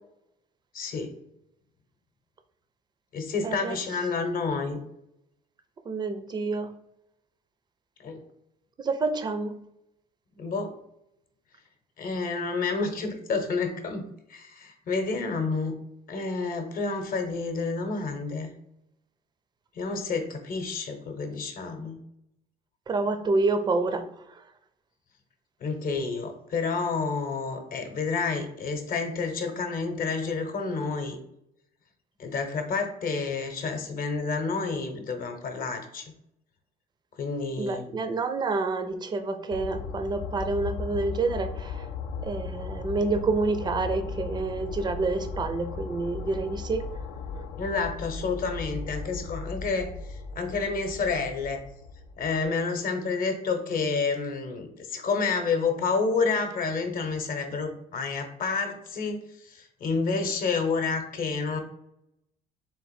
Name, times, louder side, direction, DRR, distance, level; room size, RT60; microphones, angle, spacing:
voice 1, 0.7-1.1 3.1-4.8 8.0-8.2 10.4-10.7 12.0-15.8 16.1-18.5 19.8-22.0 25.6-31.2 32.2-36.1 37.2-37.9 47.6-51.6 52.2-61.6, left 4 dB, 55° left, 5 dB, 0.8 m, -29 dB
voice 2, 3.4-3.8 5.9-6.7 8.8-9.6 22.9-24.0 37.6-41.9 42.2-46.8, right 3 dB, 25° right, 8 dB, 0.5 m, -28 dB
sound 1, 39.5-52.5, left 5 dB, 75° left, 0.4 m, -37 dB
3.8 x 2.5 x 4.1 m, 0.79 s
cardioid pair, 110°, 17 cm